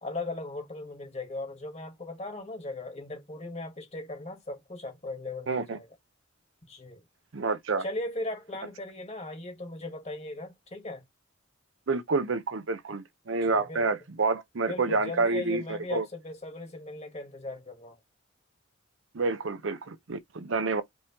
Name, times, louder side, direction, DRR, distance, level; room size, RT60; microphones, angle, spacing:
voice 1, 0.0-5.9 6.7-7.0 7.8-11.0 13.4-13.9 14.7-18.0, left 2 dB, 30° left, 1.6 m, -38 dB
voice 2, 5.5-5.8 7.3-7.8 11.9-16.1 19.1-20.8, right 3 dB, 65° right, 0.6 m, -28 dB
5.3 x 3.0 x 2.9 m
head